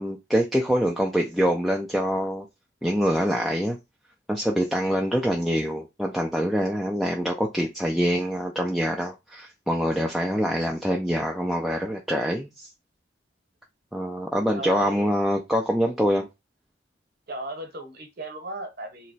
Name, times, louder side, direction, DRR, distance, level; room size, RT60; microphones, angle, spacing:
voice 1, 0.0-2.5 2.8-3.8 4.3-12.7 13.9-16.3, equal, ahead, 0.3 m, -25 dB
voice 2, 14.5-15.1 17.3-19.1, right 1 dB, 55° right, 0.9 m, -36 dB
3.0 x 2.2 x 4.0 m
head